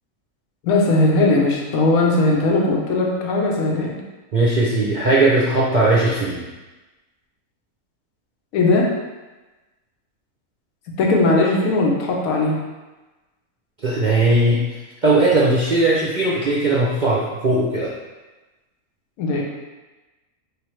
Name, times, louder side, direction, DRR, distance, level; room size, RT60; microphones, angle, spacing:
voice 1, 0.6-4.0 8.5-8.9 11.0-12.6 19.2-19.4, left 2 dB, 70° left, -1 dB, 1.2 m, -18 dB
voice 2, 4.3-6.4 13.8-14.6 15.0-17.9, right 2 dB, 50° right, -7 dB, 0.5 m, -18 dB
4.8 x 3.4 x 3.1 m, 1.2 s
omnidirectional pair, 1.6 m